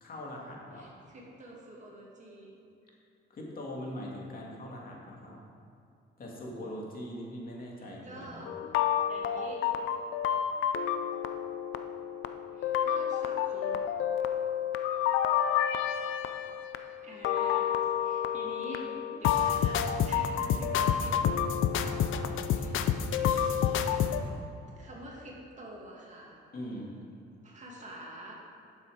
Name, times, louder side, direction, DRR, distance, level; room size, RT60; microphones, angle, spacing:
voice 1, 0.0-0.9 3.3-5.4 6.2-8.5 21.8-22.3 26.5-26.9, left 1 dB, 45° left, -3 dB, 2.4 m, -41 dB
voice 2, 0.7-2.6 8.0-8.5 9.1-9.7 12.5-13.8 14.2-14.4 17.0-18.9 19.2-21.7 22.5-22.8 23.1-23.3 23.6-24.3 24.8-26.4 27.4-28.3, right 1 dB, 35° right, -3 dB, 2.5 m, -47 dB
sound 1, 8.5-24.2, left 9 dB, 80° left, 0.6 m, -29 dB
11.0 x 7.2 x 5.1 m, 2.5 s
cardioid pair, 90°, 20 cm